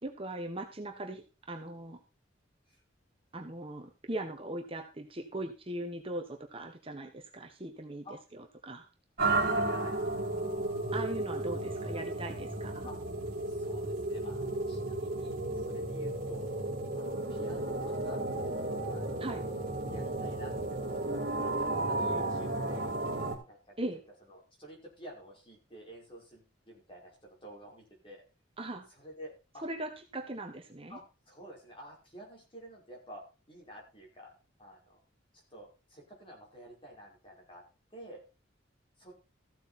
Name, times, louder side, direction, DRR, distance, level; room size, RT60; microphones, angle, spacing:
voice 1, 0.0-2.0 3.3-8.0 8.6-8.9 10.9-12.9 19.2-19.4 23.8-24.0 28.6-28.9 29.6-31.0, right 1 dB, 30° right, 4 dB, 1.3 m, -39 dB
sound 1, 9.2-23.4, right 2 dB, 50° right, 3.3 m, -33 dB
voice 2, 9.4-10.0 12.8-13.0 13.5-16.5 16.9-18.2 18.8-19.3 19.9-22.9 23.5-23.8 24.3-28.2 28.9-29.7 30.9-35.0 35.5-37.6 37.9-38.2 39.0-39.1, equal, 25° left, -1 dB, 5.6 m, -50 dB
14.5 x 8.0 x 4.3 m, 0.32 s
head